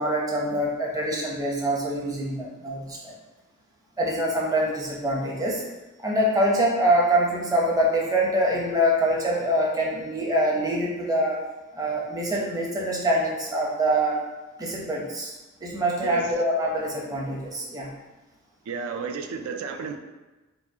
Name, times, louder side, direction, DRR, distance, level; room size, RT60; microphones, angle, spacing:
voice 1, 0.0-3.1 4.0-5.6 6.0-11.4 11.7-14.2 14.6-17.9, right 1 dB, 15° right, -3 dB, 0.7 m, -25 dB
voice 2, 18.7-20.0, right 5 dB, 70° right, 5 dB, 0.3 m, -32 dB
4.7 x 2.3 x 2.7 m, 1.1 s
head